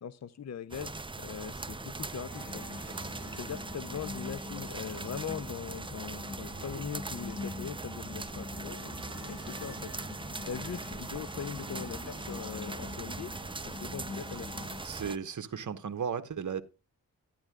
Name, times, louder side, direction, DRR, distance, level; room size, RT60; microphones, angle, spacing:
voice 1, 0.0-2.9 3.3-8.8 9.3-9.9 10.5-13.3 13.6-14.7, left 7 dB, 50° left, 0.6 m, -41 dB
sound 1, 0.7-15.2, right 3 dB, 15° right, 0.5 m, -41 dB
sound 2, 2.3-14.8, left 3 dB, 85° left, 5.6 m, -44 dB
voice 2, 14.8-16.6, right 7 dB, 55° right, 1.1 m, -35 dB
12.0 x 10.0 x 2.3 m
cardioid pair, 80°, 36 cm